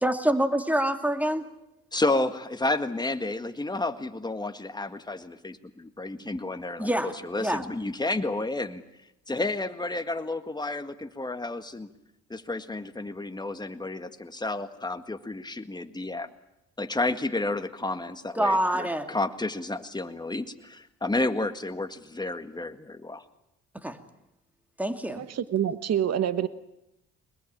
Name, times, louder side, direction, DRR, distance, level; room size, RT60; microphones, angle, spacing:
voice 1, 0.0-1.4 6.8-7.1 7.4-7.6 18.4-19.1 23.8-24.0 24.8-25.2, right 1 dB, 5° right, 7 dB, 2.5 m, -25 dB
voice 2, 1.9-8.8 9.3-11.9 12.3-16.3 16.8-23.2, left 2 dB, 15° left, 8 dB, 1.8 m, -31 dB
voice 3, 25.1-26.5, right 10 dB, 55° right, 13 dB, 1.3 m, -27 dB
23.0 x 21.0 x 8.7 m, 0.90 s
cardioid pair, 90°, 30 cm